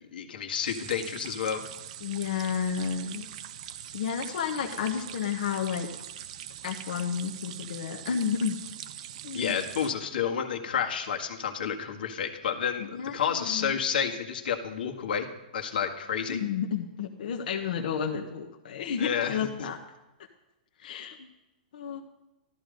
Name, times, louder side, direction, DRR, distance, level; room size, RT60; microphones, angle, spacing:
voice 1, 0.1-1.6 9.3-15.3 15.5-16.4 19.0-19.7, left 7 dB, 80° left, 3 dB, 1.8 m, -30 dB
sound 1, 0.7-9.9, right 11 dB, 45° right, 0.7 m, -42 dB
voice 2, 2.0-3.3 3.9-5.9 6.6-8.6 9.2-9.6 12.8-13.7 16.3-19.8 20.8-21.3 21.7-22.0, left 7 dB, 60° left, 3 dB, 1.2 m, -31 dB
13.5 x 13.0 x 5.3 m, 1.0 s
hypercardioid pair, 165°, 5 cm